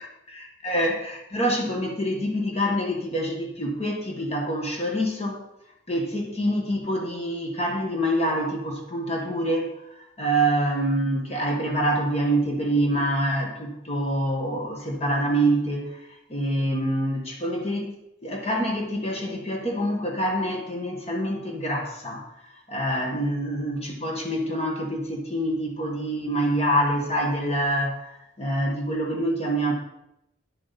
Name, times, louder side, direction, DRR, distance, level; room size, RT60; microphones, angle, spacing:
voice 1, 0.0-5.4 5.9-9.8 10.2-15.9 16.3-18.0 18.2-22.2 22.7-29.7, right 1 dB, 35° left, 0 dB, 1.7 m, -26 dB
10.0 x 7.4 x 4.2 m, 0.82 s
head